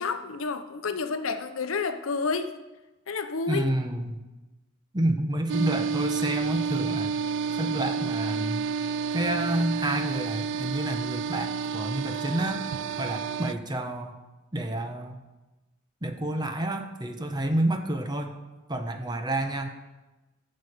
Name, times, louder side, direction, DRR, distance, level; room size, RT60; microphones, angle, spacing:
voice 1, 0.0-2.6 3.1-3.7, left 4 dB, 70° left, 0.7 m, -30 dB
voice 2, 3.5-4.2 4.9-7.2 7.6-8.7 9.1-12.7 13.0-14.2 14.5-15.2 16.0-18.4 18.7-19.7, right 1 dB, 20° right, 0.9 m, -29 dB
sound 1, 5.5-13.5, right 6 dB, 60° right, 0.3 m, -30 dB
15.0 x 6.6 x 5.0 m
head